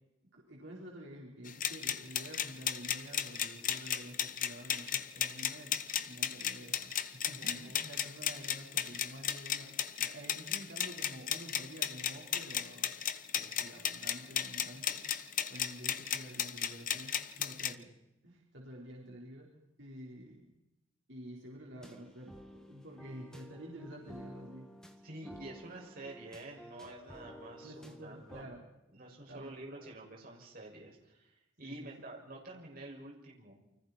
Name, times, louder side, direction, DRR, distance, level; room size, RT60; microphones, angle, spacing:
voice 1, 0.3-12.9 13.3-15.0 15.5-17.9 18.2-19.5 19.8-20.5 21.1-24.7 27.6-28.7 29.3-29.9 31.6-31.9, equal, 65° right, -2 dB, 4.4 m, -49 dB
sound 1, 1.5-17.7, left 9 dB, 40° left, 1.0 m, -35 dB
voice 2, 7.4-7.9 25.0-28.5 28.9-33.5, right 2 dB, 45° right, -1 dB, 6.3 m, -49 dB
sound 2, 21.8-28.4, equal, 5° left, 2.0 m, -52 dB
29.5 x 25.0 x 4.4 m, 0.91 s
head